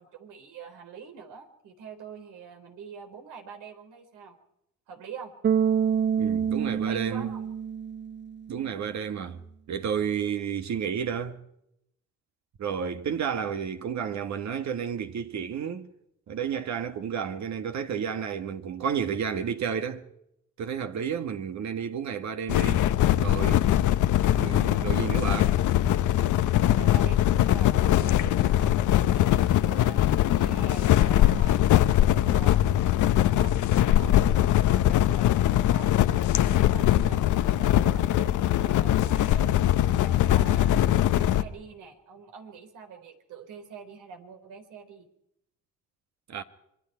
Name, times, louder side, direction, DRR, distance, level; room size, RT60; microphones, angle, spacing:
voice 1, 0.0-4.4 4.9-5.3 6.8-7.5 26.6-32.6 33.0-36.3 36.6-39.5 39.9-45.1, right 5 dB, 85° right, 4.0 m, -45 dB
Bass guitar, 5.4-8.6, right 7 dB, 35° right, 0.7 m, -27 dB
voice 2, 6.2-7.3 8.5-9.4 9.7-11.4 12.6-15.9 16.3-20.1 20.6-22.9 23.2-23.7 24.3-25.5 46.3-46.4, right 7 dB, 65° right, 1.8 m, -31 dB
sound 1, 22.5-41.4, left 12 dB, 80° left, 1.0 m, -22 dB
26.0 x 22.0 x 4.6 m
cardioid pair, 90°, 30 cm